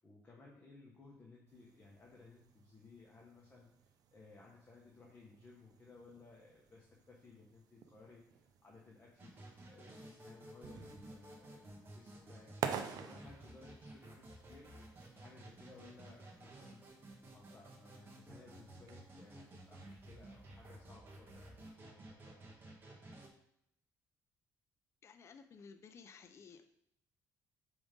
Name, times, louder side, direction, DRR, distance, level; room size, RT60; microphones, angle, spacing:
voice 1, 0.0-9.3 9.6-14.7 15.1-16.8 17.2-22.4, left 3 dB, 25° left, -3 dB, 1.2 m, -59 dB
sound 1, 1.5-20.8, right 7 dB, 60° right, 0.6 m, -51 dB
sound 2, 9.2-23.3, right 1 dB, 30° right, 1.4 m, -54 dB
voice 2, 25.0-26.6, left 5 dB, 40° left, 8 dB, 0.5 m, -56 dB
4.9 x 3.6 x 5.3 m, 0.75 s
cardioid pair, 115°, 7 cm